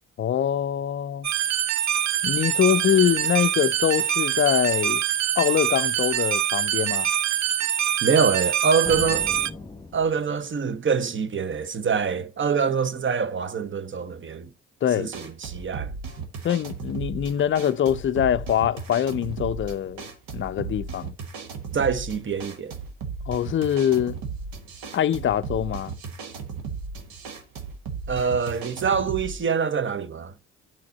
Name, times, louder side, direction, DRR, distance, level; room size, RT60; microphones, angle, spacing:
voice 1, 0.2-1.3 2.2-5.0 5.4-7.1 14.8-15.1 16.4-20.1 20.3-21.1 23.3-24.2 24.9-25.9, left 10 dB, 35° left, 0.5 m, -24 dB
sound 1, 1.2-9.5, right 10 dB, 50° right, 0.6 m, -24 dB
voice 2, 8.0-9.3 9.9-14.5 15.0-15.9 21.7-22.7 28.1-30.3, right 6 dB, 35° right, 0.9 m, -25 dB
sound 2, 8.8-10.6, left 3 dB, 10° left, 1.3 m, -38 dB
sound 3, 15.1-29.4, right 5 dB, 70° right, 1.3 m, -36 dB
8.6 x 4.4 x 4.0 m
hypercardioid pair, 45°, 36 cm